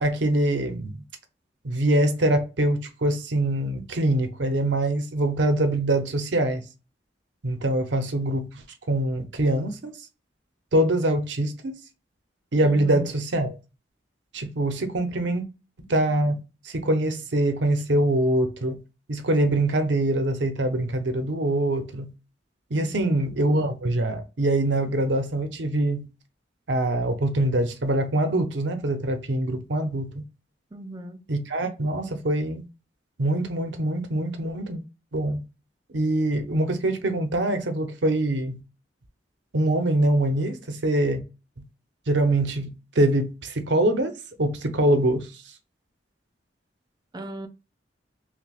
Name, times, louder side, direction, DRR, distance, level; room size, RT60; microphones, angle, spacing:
voice 1, 0.0-1.0 1.6-6.6 7.4-8.5 8.9-9.9 10.7-11.8 12.5-13.5 14.3-15.4 15.8-18.8 19.1-22.1 22.7-26.1 26.7-30.2 31.3-32.6 33.2-34.8 35.1-35.4 35.9-38.6 39.5-41.2 42.1-44.1 44.4-45.3, right 1 dB, 75° right, 0.7 m, -24 dB
voice 2, 12.6-13.1 14.8-15.4 22.7-23.2 30.7-31.2 47.1-47.5, equal, 20° right, 0.4 m, -38 dB
5.9 x 2.2 x 2.3 m
head